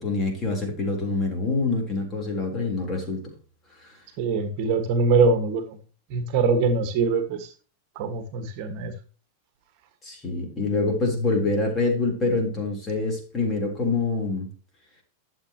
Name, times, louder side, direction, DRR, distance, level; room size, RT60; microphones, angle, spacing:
voice 1, 0.0-3.3 3.8-3.9 10.0-14.5, left 3 dB, 20° left, 1 dB, 3.7 m, -26 dB
voice 2, 4.2-5.8 6.1-7.5 7.9-8.9, right 4 dB, 50° right, 7 dB, 1.7 m, -23 dB
12.0 x 7.6 x 3.0 m, 0.38 s
supercardioid pair, 145°, 0 cm